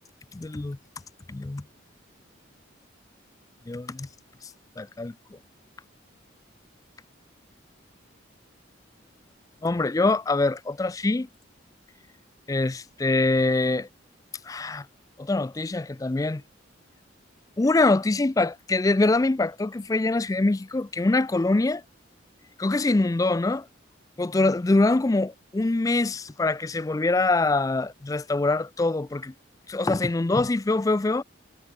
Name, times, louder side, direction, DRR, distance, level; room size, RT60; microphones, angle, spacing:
voice 1, 0.3-0.8 1.3-1.6 3.7-4.1 4.4-4.5 4.8-5.4 9.6-11.3 12.5-13.9 14.4-14.9 15.2-16.4 17.6-21.8 22.6-23.7 24.2-29.3 29.7-31.2, left 2 dB, 15° left, 0.3 m, -24 dB
head